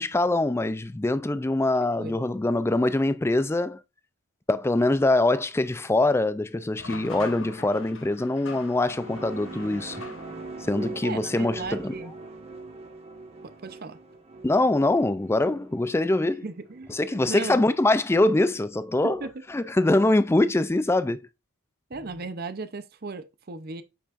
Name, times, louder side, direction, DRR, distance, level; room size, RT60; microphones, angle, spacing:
voice 1, 0.0-3.8 4.5-10.0 10.7-11.9 14.4-16.4 16.9-19.2 19.5-21.3, left 2 dB, 10° left, 0.3 m, -23 dB
voice 2, 1.8-2.2 11.0-12.1 13.6-14.0 16.4-17.6 19.0-19.3 21.9-23.8, right 3 dB, 45° right, 0.7 m, -36 dB
sound 1, 6.8-10.7, left 3 dB, 60° left, 1.0 m, -42 dB
sound 2, 8.5-17.2, right 3 dB, 30° right, 1.3 m, -42 dB
8.3 x 5.7 x 2.5 m
head